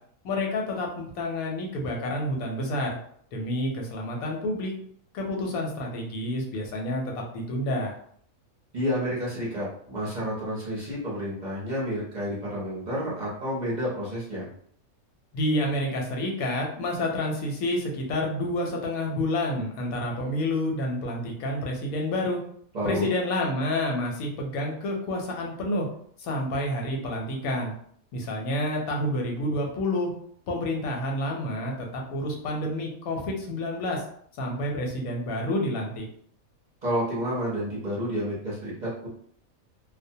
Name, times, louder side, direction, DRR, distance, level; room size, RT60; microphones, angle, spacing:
voice 1, 0.2-3.0 3.3-4.7 5.1-7.9 15.3-22.4 22.8-25.9 26.2-27.7 28.1-30.1 30.5-34.0 34.4-36.0, left 1 dB, 85° left, 0 dB, 1.1 m, -29 dB
voice 2, 8.7-14.5 22.7-23.1 36.8-39.1, equal, 40° right, -7 dB, 0.7 m, -30 dB
2.4 x 2.1 x 2.6 m, 0.63 s
omnidirectional pair, 1.5 m